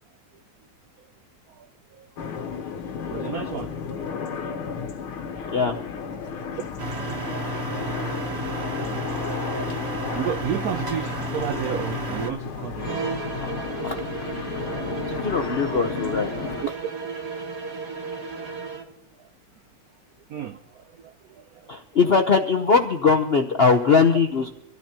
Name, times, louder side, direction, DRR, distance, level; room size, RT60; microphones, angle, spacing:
sound 1, 2.2-16.7, left 6 dB, 85° left, 1.9 m, -33 dB
voice 1, 3.1-3.7 5.0-5.2 9.9-13.1 16.6-16.7 18.2-18.3 19.2-19.3 20.3-21.7, right 9 dB, 85° right, 0.8 m, -32 dB
sound 2, 6.8-12.3, right 2 dB, 40° right, 1.1 m, -32 dB
sound 3, 12.8-18.9, right 5 dB, 60° right, 2.7 m, -34 dB
voice 2, 15.1-16.3 21.7-24.5, left 5 dB, 65° left, 0.6 m, -20 dB
25.5 x 13.5 x 2.9 m
omnidirectional pair, 2.3 m